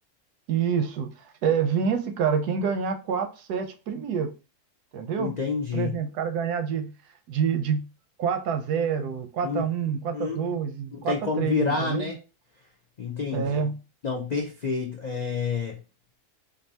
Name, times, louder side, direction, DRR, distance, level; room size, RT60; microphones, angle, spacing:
voice 1, 0.5-1.1 1.4-4.3 4.9-5.4 5.7-6.9 7.3-7.9 8.2-12.1 13.3-13.8, right 7 dB, 85° right, 1.2 m, -27 dB
voice 2, 5.2-5.9 9.4-9.6 10.1-10.4 10.9-12.2 13.0-13.7 14.0-15.8, left 5 dB, 80° left, 0.3 m, -28 dB
4.5 x 2.6 x 2.7 m
omnidirectional pair, 1.6 m